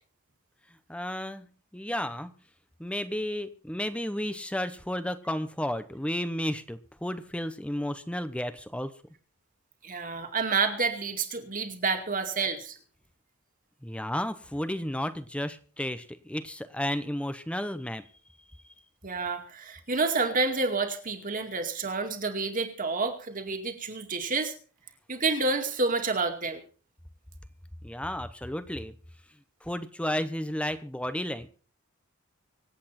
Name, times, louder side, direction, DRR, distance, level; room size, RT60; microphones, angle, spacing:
voice 1, 0.9-1.5 1.7-2.3 2.8-8.9 13.8-18.0 27.8-28.9 29.6-31.5, left 1 dB, 5° left, 11 dB, 0.9 m, -32 dB
voice 2, 9.8-12.8 19.0-24.5 25.1-26.6, right 4 dB, 40° right, 5 dB, 2.3 m, -29 dB
25.5 x 8.5 x 4.3 m, 0.39 s
head